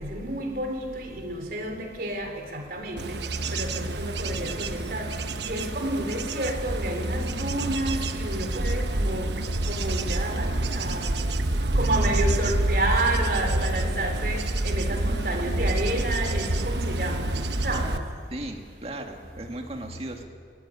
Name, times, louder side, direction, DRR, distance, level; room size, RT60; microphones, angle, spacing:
voice 1, 0.0-3.0 3.5-3.7 4.0-5.1 5.4-9.3 9.7-11.2 11.8-14.4 14.6-17.2 17.6-17.9, right 1 dB, 55° right, 3 dB, 3.6 m, -30 dB
Bird / Insect / Wind, 3.0-18.0, right 1 dB, 80° right, 1.1 m, -27 dB
voice 2, 18.3-20.2, right 1 dB, 35° right, 3 dB, 2.0 m, -36 dB
21.5 x 13.5 x 10.0 m, 2.3 s
head